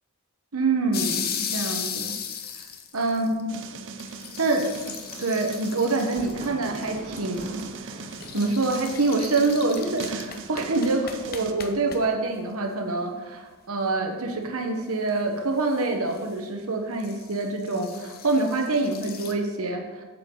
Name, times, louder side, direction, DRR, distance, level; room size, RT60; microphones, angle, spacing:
voice 1, 0.5-2.2 2.9-3.6 4.4-8.0 8.3-19.8, right 3 dB, 75° right, 3 dB, 1.2 m, -26 dB
sound 1, 0.9-3.4 3.7-3.8 4.0-6.8 7.2-7.4 8.0-12.0 14.9-15.1 15.7-15.8 16.1-16.2 17.0-19.3, left 8 dB, 45° left, 0.7 m, -36 dB
sound 2, 3.5-11.5, right 4 dB, 55° right, 0.6 m, -40 dB
Thunder, 4.5-10.4, right 1 dB, 40° right, 1.9 m, -45 dB
9.0 x 7.5 x 3.9 m, 1.2 s
head